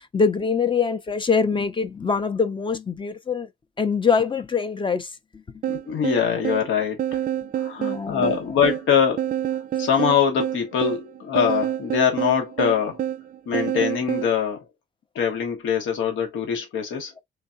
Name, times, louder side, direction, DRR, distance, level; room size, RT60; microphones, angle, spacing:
voice 1, 0.1-3.5 3.8-5.4 7.8-8.4, left 5 dB, 25° left, 0.6 m, -24 dB
sound 1, 5.6-14.3, right 11 dB, 45° right, 0.4 m, -28 dB
voice 2, 5.7-7.2 7.5-9.3 9.8-13.0 13.5-14.6 15.1-17.1, left 7 dB, 80° left, 1.3 m, -23 dB
3.9 x 3.4 x 2.6 m
cardioid pair, 90°, 20 cm